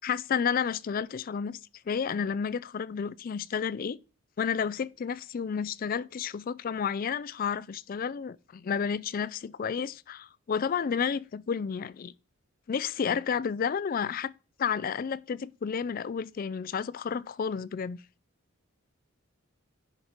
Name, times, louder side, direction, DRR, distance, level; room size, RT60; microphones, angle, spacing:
voice 1, 0.0-1.6 1.9-4.0 4.4-12.1 12.7-14.3 14.6-18.0, left 6 dB, 40° left, 0.3 m, -31 dB
10.5 x 5.2 x 4.4 m
head